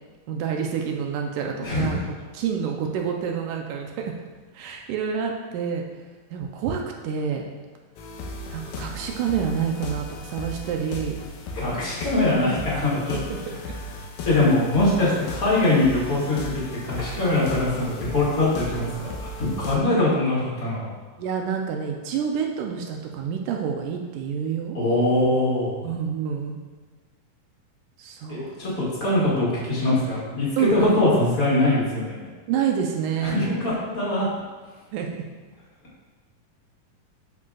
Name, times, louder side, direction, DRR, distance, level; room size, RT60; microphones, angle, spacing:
voice 1, 0.3-2.0 2.3-4.1 4.5-5.9 6.3-7.5 8.5-11.2 13.1-13.6 21.2-24.8 25.8-26.6 28.0-28.5 30.6-31.0 32.5-33.5 34.9-35.1, right 7 dB, 85° right, 2 dB, 1.8 m, -28 dB
voice 2, 1.6-2.1 11.5-13.2 14.2-16.5 16.8-20.9 24.7-25.8 28.3-32.2 33.2-34.3, left 2 dB, 30° left, -7 dB, 1.8 m, -22 dB
sound 1, 8.0-19.8, left 2 dB, 85° left, 2.6 m, -36 dB
12.0 x 5.0 x 2.4 m, 1.3 s
omnidirectional pair, 4.2 m